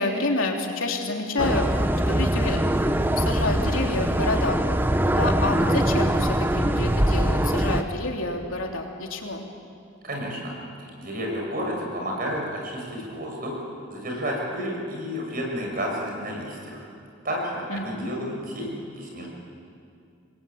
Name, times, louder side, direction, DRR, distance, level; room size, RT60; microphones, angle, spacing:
voice 1, 0.0-1.7 2.1-2.6 3.1-4.6 5.1-9.4 17.7-18.1, left 2 dB, 90° left, 1 dB, 3.3 m, -28 dB
sound 1, 1.4-7.8, right 1 dB, 10° right, 0.8 m, -22 dB
voice 2, 10.0-10.5 10.8-13.6 13.9-16.8 17.2-19.3, equal, 45° right, -1 dB, 6.9 m, -31 dB
28.0 x 21.0 x 8.8 m, 2.4 s
head